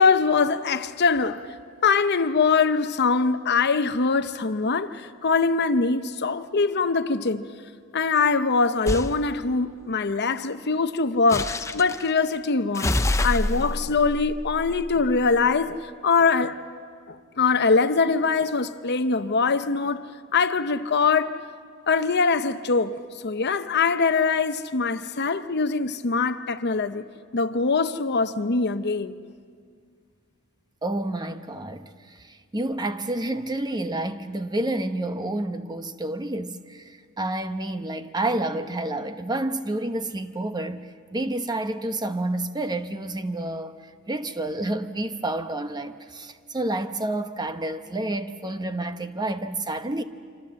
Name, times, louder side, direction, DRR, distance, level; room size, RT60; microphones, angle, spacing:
voice 1, 0.0-1.4 1.8-7.5 7.9-12.9 13.2-16.6 17.1-20.0 20.3-21.4 21.9-27.0 27.3-29.2, left 4 dB, 50° left, 0.8 m, -23 dB
sound 1, 8.9-9.1 11.3-12.0 12.7-15.4, left 1 dB, 15° left, 0.7 m, -27 dB
voice 2, 30.8-43.8 44.1-50.0, right 1 dB, 20° right, 0.9 m, -29 dB
26.0 x 25.5 x 7.5 m
head